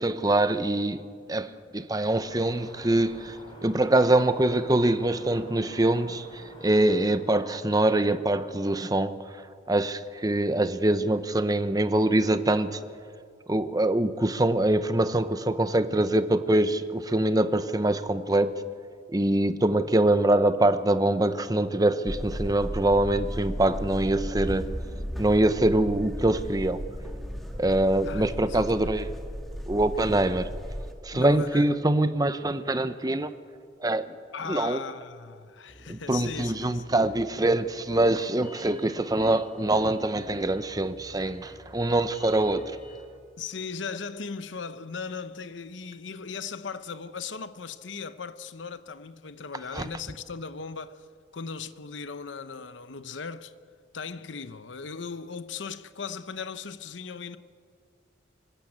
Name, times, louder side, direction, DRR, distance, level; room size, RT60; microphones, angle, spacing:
voice 1, 0.0-3.4 3.6-9.3 9.7-12.8 13.5-18.7 19.1-24.7 25.2-26.8 27.5-29.1 29.7-30.5 31.0-33.3 33.8-34.1 34.5-34.8 35.9-42.8 49.7-49.9, right 1 dB, 20° right, 0.8 m, -24 dB
sound 1, 2.1-7.1, left 1 dB, 25° left, 4.0 m, -47 dB
sound 2, 22.1-30.9, equal, ahead, 2.1 m, -35 dB
voice 2, 28.0-28.9 31.1-31.7 34.3-36.8 43.4-51.1 51.3-53.5 53.9-57.4, left 5 dB, 75° left, 0.8 m, -38 dB
sound 3, 35.7-43.0, equal, 45° left, 5.3 m, -51 dB
25.0 x 14.0 x 8.6 m
head